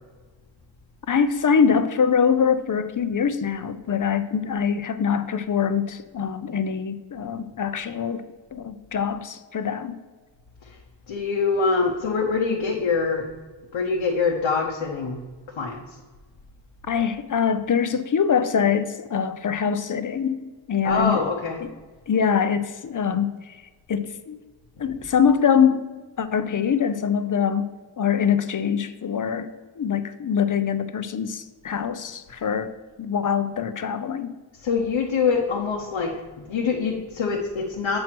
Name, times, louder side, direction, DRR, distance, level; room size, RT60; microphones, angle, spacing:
voice 1, 1.1-8.3 8.5-10.0 16.9-20.4 20.7-21.2 21.6-21.7 22.1-23.5 23.9-24.4 24.8-27.7 28.0-32.7 33.0-34.3, left 7 dB, 45° left, 0.5 m, -23 dB
voice 2, 11.1-13.3 13.7-15.2 15.6-15.8 20.8-21.6 34.6-38.0, left 5 dB, 85° left, 0.9 m, -24 dB
7.5 x 3.0 x 5.9 m
wide cardioid pair, 80°, 47 cm